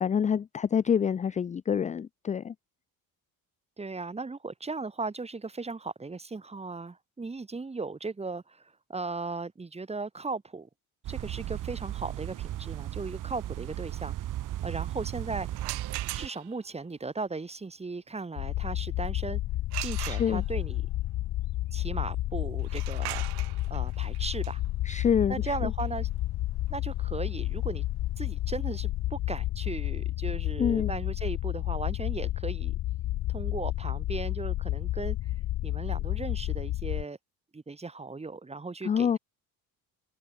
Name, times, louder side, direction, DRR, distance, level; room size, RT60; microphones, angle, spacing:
voice 1, 0.0-2.5 20.0-20.4 24.9-25.7 30.6-30.9 38.8-39.2, left 7 dB, 20° left, 0.4 m, -27 dB
voice 2, 3.8-10.7 11.1-14.1 14.6-15.5 16.2-19.4 19.8-20.8 21.7-23.2 23.7-24.6 25.3-26.1 26.7-27.8 28.2-32.7 33.3-35.3 35.6-37.2 37.5-39.2, right 3 dB, 15° right, 1.8 m, -37 dB
sound 1, 11.0-16.3, right 13 dB, 55° right, 1.2 m, -36 dB
sound 2, 15.5-16.7 19.7-20.7 22.6-28.3, right 19 dB, 80° right, 5.4 m, -41 dB
sound 3, 18.4-37.0, left 15 dB, 60° left, 1.2 m, -31 dB
cardioid pair, 105°, 39 cm